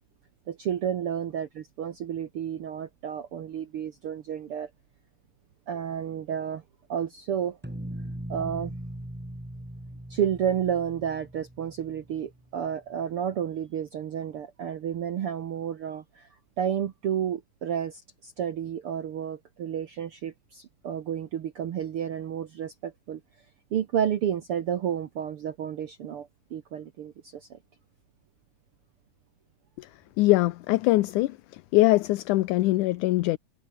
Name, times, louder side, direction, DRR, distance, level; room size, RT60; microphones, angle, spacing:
voice 1, 0.5-4.7 5.7-6.6 6.9-7.6 8.3-8.7 10.1-16.3 16.6-23.2 23.7-27.6, right 9 dB, 65° right, 1.4 m, -31 dB
sound 1, 7.6-12.5, right 1 dB, 15° right, 0.3 m, -40 dB
voice 2, 30.2-31.4 31.7-33.4, left 18 dB, 75° left, 2.0 m, -22 dB
omnidirectional pair, 4.0 m